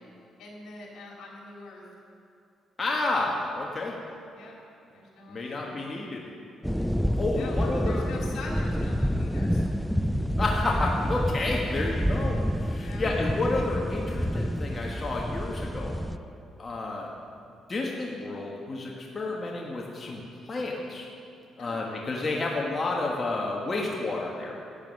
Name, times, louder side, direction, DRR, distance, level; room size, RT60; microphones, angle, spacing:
voice 1, 0.4-1.8 4.3-4.6 4.9-5.8 7.3-10.0 12.8-13.1 21.6-21.9, left 2 dB, 75° left, -2 dB, 3.1 m, -43 dB
voice 2, 2.8-4.0 5.3-6.3 7.2-8.0 10.4-15.9 16.6-17.1 17.7-21.1 21.6-24.6, left 2 dB, 30° left, -2 dB, 1.5 m, -30 dB
sound 1, 6.6-16.2, equal, ahead, 0.4 m, -28 dB
12.0 x 9.2 x 6.5 m, 2.6 s
cardioid pair, 90°, 0 cm